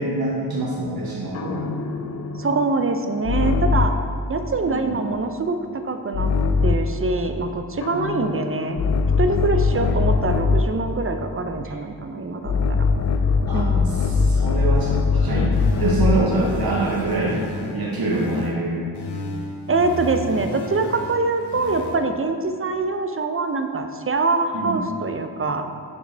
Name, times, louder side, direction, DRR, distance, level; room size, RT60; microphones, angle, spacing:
voice 1, 0.0-1.8 4.6-5.0 9.7-10.0 13.5-17.4 17.7-18.9 24.5-24.8, right 2 dB, 60° right, -5 dB, 1.0 m, -25 dB
sound 1, 1.3-4.1 6.1-7.0 7.8-10.8 12.4-16.3, left 4 dB, 40° left, 0.4 m, -21 dB
voice 2, 2.4-3.9 4.3-6.3 6.6-8.8 9.2-12.9 13.5-13.9 19.7-25.7, right 3 dB, 35° right, 7 dB, 0.5 m, -24 dB
sound 2, 15.5-18.5 18.9-21.9, left 1 dB, 70° left, 0.8 m, -34 dB
6.4 x 5.2 x 3.3 m, 2.3 s
cardioid pair, 40°, 42 cm